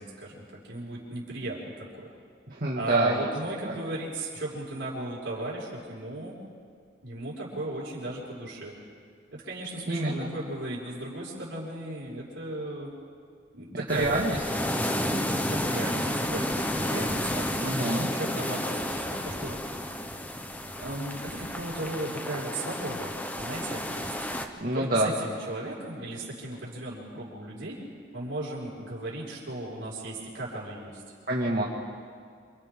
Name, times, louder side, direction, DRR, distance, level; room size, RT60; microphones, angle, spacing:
voice 1, 0.0-1.9 2.8-6.3 7.0-8.7 9.3-12.9 13.5-14.2 15.1-17.5 18.1-19.6 20.8-24.3 24.7-27.8 28.1-31.0, right 2 dB, 65° right, -6 dB, 5.7 m, -36 dB
voice 2, 2.5-3.3 3.6-3.7 9.9-10.3 14.0-14.4 17.6-18.1 24.6-25.1 31.3-31.6, right 1 dB, 45° right, -3 dB, 2.2 m, -27 dB
sound 1, 13.9-24.5, left 1 dB, 10° left, 0.9 m, -31 dB
28.0 x 27.0 x 3.8 m, 2.1 s
head